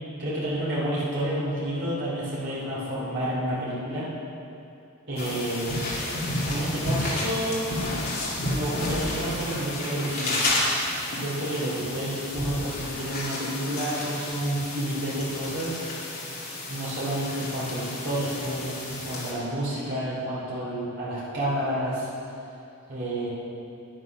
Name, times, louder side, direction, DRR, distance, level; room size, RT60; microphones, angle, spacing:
voice 1, 0.2-4.1 5.1-6.1 6.5-7.7 8.4-10.4 11.1-15.8 16.7-22.1 22.9-23.3, right 1 dB, 55° right, -8 dB, 3.1 m, -30 dB
sound 1, 5.2-19.3, left 1 dB, 45° left, 2.5 m, -31 dB
9.9 x 9.4 x 5.9 m, 2.7 s
head